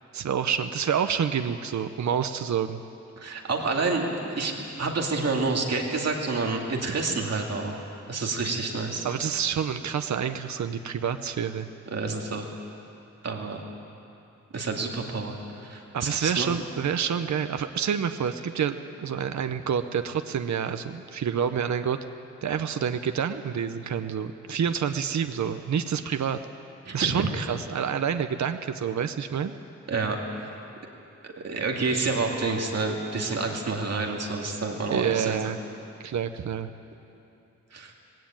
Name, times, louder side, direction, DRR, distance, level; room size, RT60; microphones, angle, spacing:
voice 1, 0.1-2.8 9.0-11.7 15.9-22.0 22.4-26.4 26.9-29.5 34.9-35.6 36.0-36.7, right 7 dB, 75° right, 9 dB, 0.8 m, -28 dB
voice 2, 3.2-7.8 8.1-9.1 11.9-12.5 13.2-13.6 14.5-16.5 26.9-27.0 29.9-30.5 31.2-35.5 37.7-37.9, right 3 dB, 60° right, 1 dB, 2.4 m, -29 dB
19.5 x 17.0 x 9.0 m, 2.7 s
wide cardioid pair, 165°, 29 cm